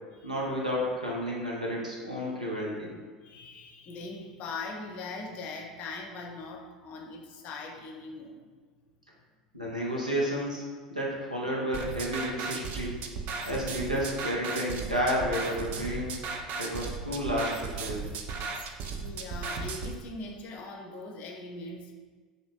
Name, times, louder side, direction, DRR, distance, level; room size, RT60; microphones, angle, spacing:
voice 1, 0.2-2.9 9.5-10.6 10.9-13.0 13.5-16.2 16.6-18.0, equal, 90° right, -4 dB, 0.6 m, -31 dB
voice 2, 3.2-8.5 13.3-13.5 19.0-21.9, left 3 dB, 45° left, 2 dB, 0.5 m, -41 dB
sound 1, 11.7-19.9, right 4 dB, 40° right, 0.3 m, -36 dB
2.9 x 2.6 x 3.3 m, 1.5 s
figure-of-eight pair, 75°, 4 cm